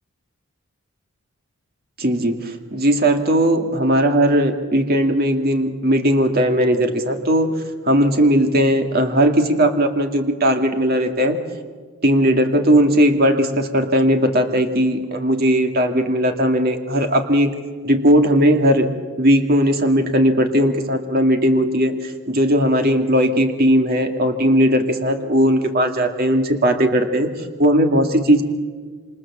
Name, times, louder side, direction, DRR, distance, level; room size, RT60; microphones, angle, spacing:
voice 1, 2.0-7.5 7.9-11.4 12.0-17.5 17.8-18.9 19.2-27.3 27.6-28.4, equal, 45° right, 5 dB, 2.2 m, -17 dB
27.0 x 26.0 x 7.3 m, 1.5 s
head